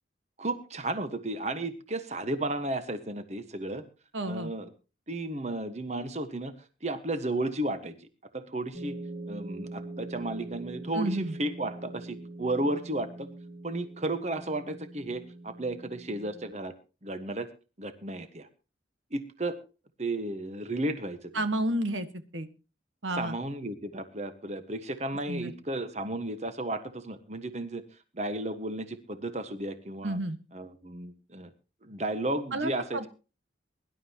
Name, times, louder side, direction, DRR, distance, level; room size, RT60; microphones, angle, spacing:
voice 1, 0.4-3.8 4.2-4.7 5.1-7.9 8.3-9.0 9.3-13.3 13.6-16.7 17.0-17.5 17.8-18.5 19.1-19.6 20.0-21.3 23.1-27.8 28.1-30.2 30.5-31.5 31.8-33.1, right 2 dB, 35° right, 9 dB, 1.4 m, -33 dB
voice 2, 4.1-4.5 10.9-11.3 21.3-22.1 22.3-22.5 23.0-23.3 25.3-25.5 30.0-30.4 32.5-33.1, right 1 dB, 90° right, 9 dB, 1.6 m, -30 dB
sound 1, 8.7-16.5, right 2 dB, 50° right, 6.4 m, -43 dB
22.5 x 11.5 x 2.9 m, 0.33 s
head